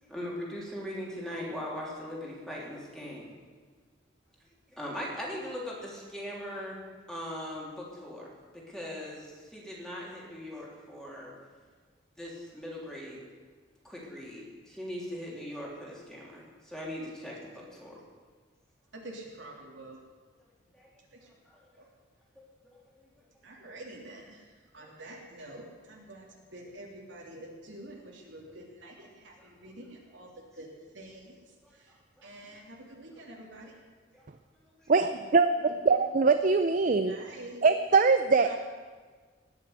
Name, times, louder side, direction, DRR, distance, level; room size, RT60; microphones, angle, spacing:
voice 1, 0.0-3.3 4.7-6.8 7.1-11.3 12.2-13.2 13.8-18.0 20.7-20.9 21.5-21.6 22.4-23.2 24.8-24.9 29.4-29.5 31.6-31.7 32.2-32.3 34.1-34.2, equal, 5° left, -5 dB, 3.4 m, -40 dB
voice 2, 19.0-20.0 21.1-21.3 21.8-21.9 23.4-30.7 30.9-31.4 31.7-31.9 32.2-33.7 36.8-37.6 38.4-38.6, right 1 dB, 75° right, -1 dB, 3.2 m, -47 dB
voice 3, 34.9-35.5 35.9-37.2 37.6-38.5, right 4 dB, 45° right, 9 dB, 0.5 m, -22 dB
19.0 x 7.0 x 8.2 m, 1.5 s
head